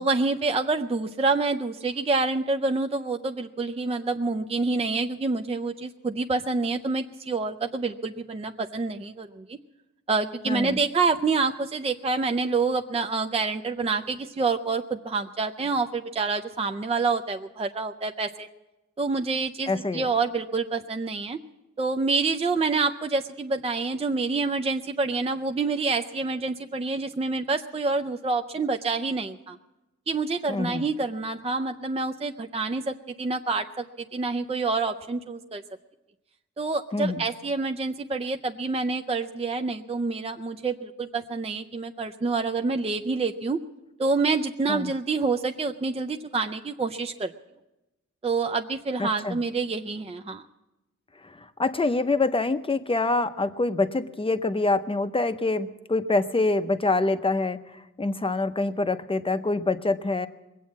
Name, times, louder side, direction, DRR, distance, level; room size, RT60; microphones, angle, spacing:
voice 1, 0.0-9.6 10.1-18.5 19.0-21.4 21.8-29.6 30.1-33.8 34.1-35.6 36.6-43.6 44.0-47.3 48.2-50.4, right 4 dB, 20° right, 6 dB, 0.5 m, -27 dB
voice 2, 10.5-10.8 19.7-20.1 30.5-30.8 36.9-37.2 44.7-44.9 49.0-49.4 51.2-60.3, left 3 dB, 15° left, 10 dB, 0.7 m, -26 dB
21.0 x 8.5 x 7.3 m, 1.0 s
wide cardioid pair, 115°, 31 cm